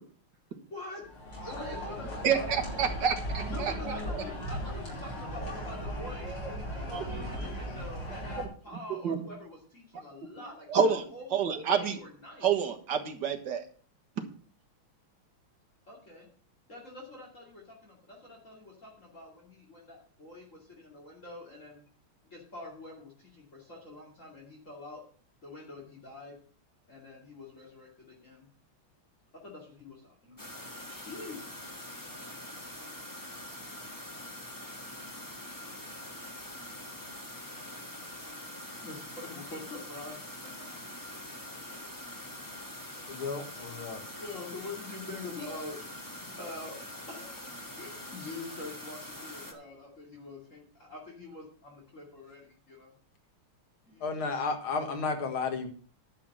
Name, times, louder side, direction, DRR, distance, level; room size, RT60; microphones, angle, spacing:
voice 1, 0.7-1.1 1.4-2.4 3.2-6.4 6.8-12.5 15.9-16.3 16.7-21.8 22.2-25.0 25.4-26.4 26.9-28.5 29.3-31.4 38.8-40.2 40.6-40.7 41.7-41.9 44.2-52.9 53.9-54.0, left 2 dB, 35° left, 3.1 m, -45 dB
sound 1, 1.0-8.5, equal, 55° left, 5.1 m, -37 dB
voice 2, 2.2-3.7 6.9-7.0 8.4-8.5 9.0-9.3 10.7-11.0 11.3-12.0 12.4-13.6, right 7 dB, 55° right, 2.0 m, -28 dB
sound 2, 30.4-49.5, left 1 dB, 10° left, 1.3 m, -44 dB
voice 3, 43.1-44.0 54.0-55.7, left 4 dB, 75° left, 2.5 m, -33 dB
11.0 x 5.7 x 7.6 m
omnidirectional pair, 2.3 m